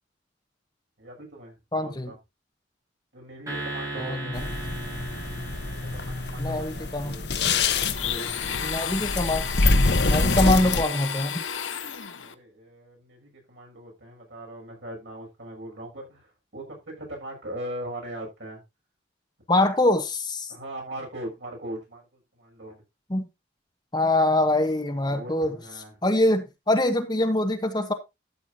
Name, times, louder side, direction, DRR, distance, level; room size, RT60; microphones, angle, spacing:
voice 1, 1.0-2.2 3.1-4.5 5.8-7.3 8.0-8.6 12.2-18.6 20.5-22.8 25.1-26.0, right 1 dB, 70° right, 6.7 m, -40 dB
voice 2, 1.7-2.1 4.0-4.4 6.4-7.1 8.6-9.4 10.1-11.4 19.5-20.5 23.1-23.3 23.9-25.5 26.0-27.9, left 1 dB, 20° left, 1.1 m, -24 dB
sound 1, 3.5-7.9, right 2 dB, 15° right, 5.9 m, -38 dB
sound 2, 4.3-10.8, left 3 dB, 60° left, 1.0 m, -26 dB
Domestic sounds home sounds, 7.9-12.4, left 8 dB, 85° left, 1.0 m, -32 dB
13.5 x 8.2 x 2.7 m
head